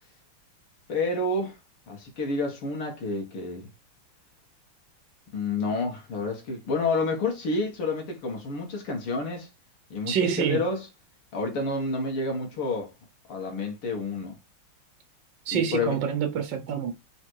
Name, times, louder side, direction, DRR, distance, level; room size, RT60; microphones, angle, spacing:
voice 1, 0.9-1.6 1.9-3.7 5.3-9.5 9.9-10.9 11.3-12.9 13.3-14.4 15.5-16.0, left 3 dB, 90° left, 2.7 m, -29 dB
voice 2, 10.1-10.6 15.4-16.9, right 7 dB, 65° right, 1.5 m, -26 dB
6.3 x 4.2 x 4.6 m
omnidirectional pair, 2.3 m